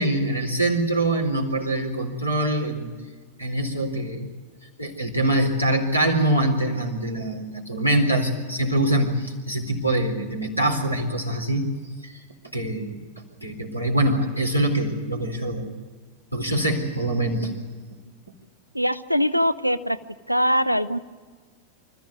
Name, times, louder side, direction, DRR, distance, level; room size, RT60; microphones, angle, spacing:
voice 1, 0.0-2.9 3.4-4.3 4.8-11.7 12.0-12.2 12.5-13.0 13.4-15.8 16.3-17.5, right 1 dB, 90° left, 5 dB, 3.9 m, -24 dB
voice 2, 18.7-20.0 20.3-21.0, equal, 90° right, 15 dB, 0.8 m, -22 dB
25.5 x 15.0 x 9.6 m, 1.5 s
figure-of-eight pair, 90°, 0 cm